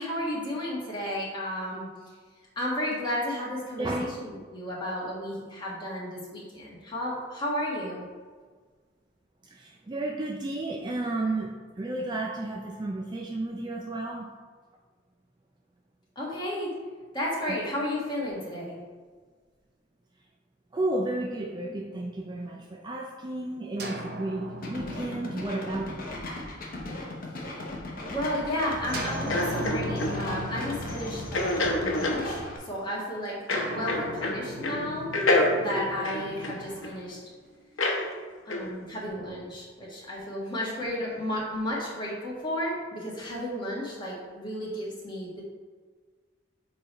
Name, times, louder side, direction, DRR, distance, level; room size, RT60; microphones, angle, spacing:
voice 1, 0.0-1.9 2.5-8.0 16.1-16.7 17.1-18.7 28.0-33.4 33.6-35.1 35.6-37.2 38.4-45.4, left 1 dB, 25° left, -5 dB, 1.6 m, -33 dB
voice 2, 9.4-14.3 20.7-26.1 36.6-37.0, right 2 dB, 20° right, 0 dB, 0.4 m, -32 dB
sound 1, 23.8-27.6 28.9-32.5 33.5-37.6, equal, 55° right, 0.9 m, -38 dB
sound 2, 24.6-32.6, left 1 dB, 45° left, 0.9 m, -37 dB
sound 3, 29.3-30.1 31.3-32.2 33.5-34.4 34.6-34.8 35.1-36.9 37.8-38.0 38.5-38.7, left 2 dB, 85° left, 0.9 m, -26 dB
6.8 x 3.3 x 4.3 m, 1.5 s
head